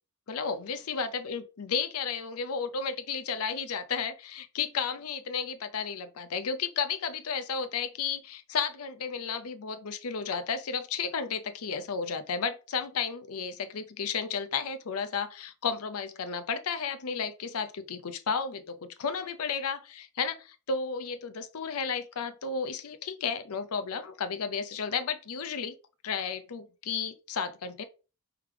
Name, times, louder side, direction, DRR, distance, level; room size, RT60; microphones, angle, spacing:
voice 1, 0.3-25.8 26.0-27.8, left 6 dB, 80° left, 0.6 m, -33 dB
3.5 x 3.3 x 4.6 m
head